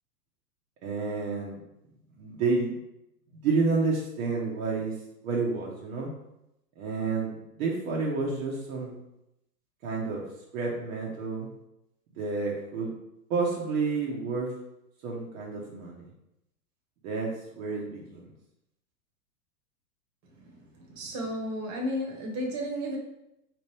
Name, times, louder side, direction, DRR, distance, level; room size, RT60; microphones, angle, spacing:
voice 1, 0.8-1.6 2.2-2.7 3.4-4.9 5.2-6.1 6.8-8.9 9.8-10.2 10.5-11.5 12.2-12.9 13.3-14.5 15.0-16.1 17.0-18.2, right 4 dB, 55° right, -3 dB, 1.0 m, -30 dB
voice 2, 20.3-23.0, equal, 35° right, 0 dB, 1.2 m, -33 dB
4.2 x 3.0 x 3.3 m, 0.85 s
hypercardioid pair, 115°, 48 cm